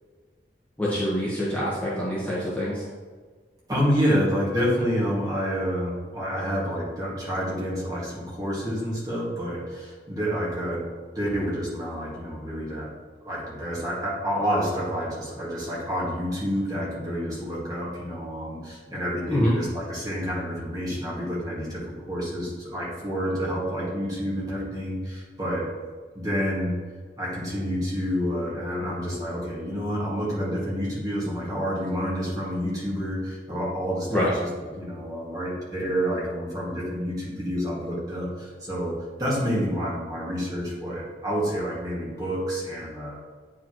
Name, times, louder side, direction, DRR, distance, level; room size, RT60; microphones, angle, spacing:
voice 1, 0.8-2.8 19.3-19.5 34.1-34.3, equal, 10° left, -8 dB, 1.2 m, -25 dB
voice 2, 3.7-10.9 11.2-12.9 13.2-25.7 26.1-26.8 27.2-34.2 34.8-43.2, equal, 20° right, -6 dB, 1.9 m, -28 dB
9.3 x 4.9 x 3.0 m, 1.5 s
head